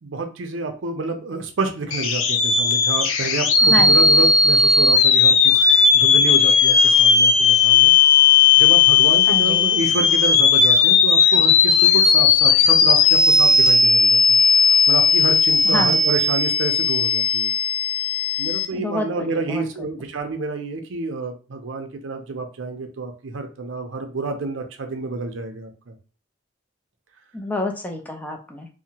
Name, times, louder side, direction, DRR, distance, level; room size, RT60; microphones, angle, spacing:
voice 1, 0.0-7.9 8.6-14.4 14.7-17.5 18.4-25.7, right 3 dB, 75° right, 5 dB, 0.5 m, -28 dB
sound 1, 1.9-18.7, left 5 dB, 85° left, 0.4 m, -16 dB
voice 2, 3.6-4.1 9.3-9.7 15.6-16.0 18.7-19.9 27.3-28.7, left 1 dB, 10° left, 2 dB, 0.4 m, -28 dB
2.8 x 2.1 x 2.8 m, 0.35 s
head